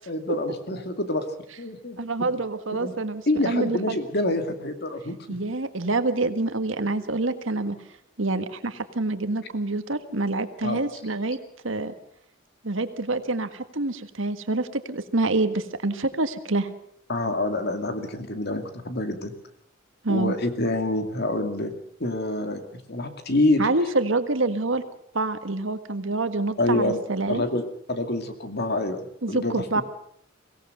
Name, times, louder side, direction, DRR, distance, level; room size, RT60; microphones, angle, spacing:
voice 1, 0.1-1.3 1.6-2.0 2.8-2.9 3.3-5.6 10.6-10.8 17.1-19.3 20.1-21.7 22.0-22.6 22.9-23.7 26.6-27.0 27.3-29.0 29.3-29.8, left 2 dB, 55° left, 7 dB, 2.5 m, -26 dB
voice 2, 2.0-4.0 5.3-7.7 8.2-11.4 11.6-11.9 12.6-16.7 20.0-20.3 23.6-24.8 25.1-27.4 29.2-29.8, right 2 dB, 75° right, 10 dB, 1.6 m, -26 dB
23.5 x 17.5 x 6.7 m, 0.67 s
head